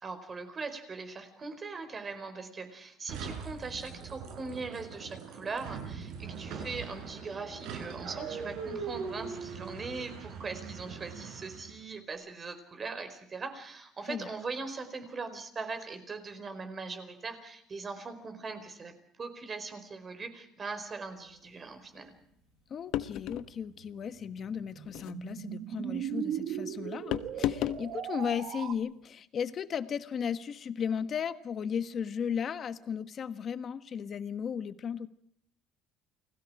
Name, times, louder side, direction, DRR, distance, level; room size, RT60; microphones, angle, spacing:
voice 1, 0.0-22.1, right 4 dB, 25° right, 8 dB, 4.6 m, -40 dB
sound 1, 3.1-11.8, right 6 dB, 75° right, 7.8 m, -41 dB
voice 2, 22.7-35.1, left 7 dB, 35° left, 12 dB, 1.5 m, -35 dB
sound 2, 22.9-23.5 24.8-25.2 27.1-27.8, left 12 dB, 65° left, 1.1 m, -32 dB
sound 3, 23.8-28.7, right 10 dB, 60° right, 1.9 m, -38 dB
30.0 x 21.0 x 4.9 m, 0.69 s
cardioid pair, 145°, 0 cm